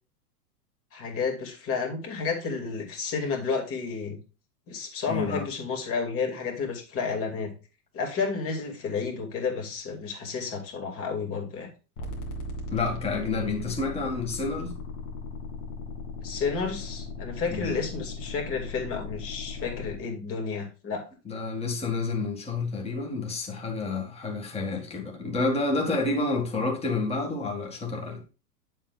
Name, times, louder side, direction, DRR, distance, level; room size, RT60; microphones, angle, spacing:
voice 1, 0.9-4.2 4.7-7.5 7.9-11.7 16.2-21.0, left 5 dB, 30° left, 2.4 m, -31 dB
voice 2, 5.1-5.4 12.7-14.8 17.5-17.8 21.3-28.2, left 3 dB, 10° left, 2.0 m, -29 dB
sound 1, 12.0-20.0, left 3 dB, 70° left, 2.6 m, -38 dB
9.1 x 7.3 x 2.4 m
hypercardioid pair, 135°, 48 cm